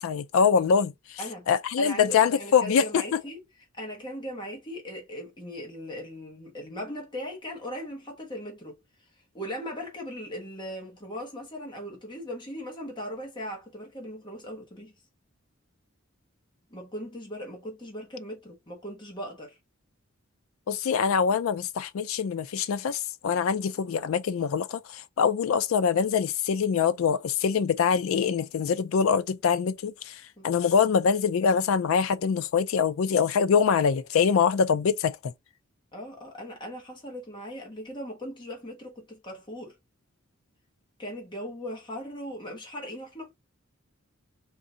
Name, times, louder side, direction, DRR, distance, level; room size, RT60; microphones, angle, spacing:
voice 1, 0.0-1.2 1.5-3.0 20.7-35.3, left 6 dB, 85° left, 0.4 m, -24 dB
voice 2, 1.8-3.4 3.7-8.8 9.3-14.9 16.7-19.6 30.4-30.5 35.9-39.8 41.0-43.3, equal, 25° left, 1.3 m, -38 dB
3.8 x 2.6 x 3.8 m
head